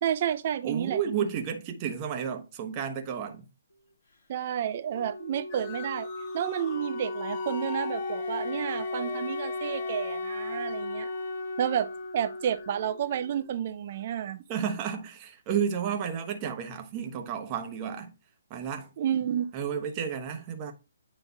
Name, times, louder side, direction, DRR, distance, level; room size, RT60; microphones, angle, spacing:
voice 1, 0.0-1.3 4.3-6.1 6.3-11.1 11.6-11.9 12.1-14.4 19.0-19.5, right 9 dB, 45° right, 0.7 m, -30 dB
voice 2, 0.6-3.5 14.5-18.1 18.5-18.9 19.5-20.7, right 7 dB, 25° right, 1.1 m, -32 dB
Wind instrument woodwind instrument, 4.9-13.6, left 2 dB, 60° left, 2.6 m, -35 dB
sound 1, 5.5-12.7, left 7 dB, 25° left, 1.2 m, -45 dB
9.3 x 3.4 x 4.0 m
hypercardioid pair, 155°, 0 cm